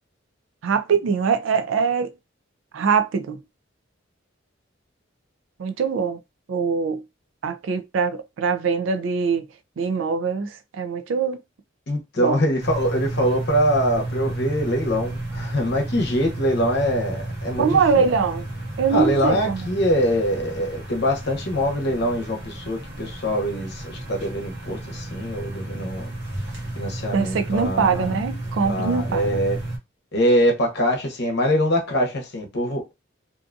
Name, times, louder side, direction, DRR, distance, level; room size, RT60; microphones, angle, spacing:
voice 1, 0.6-2.1 2.7-3.4 5.6-6.2 6.5-7.0 7.4-9.5 9.8-11.4 12.2-12.4 17.6-18.5 18.8-19.7 27.1-29.4, right 5 dB, 80° right, 0.4 m, -22 dB
voice 2, 11.9-18.0 18.9-26.1 26.7-28.2 28.6-29.6 30.1-32.8, equal, 60° left, 0.8 m, -23 dB
sound 1, 12.6-29.8, right 1 dB, 60° right, 1.0 m, -32 dB
2.6 x 2.3 x 2.5 m
head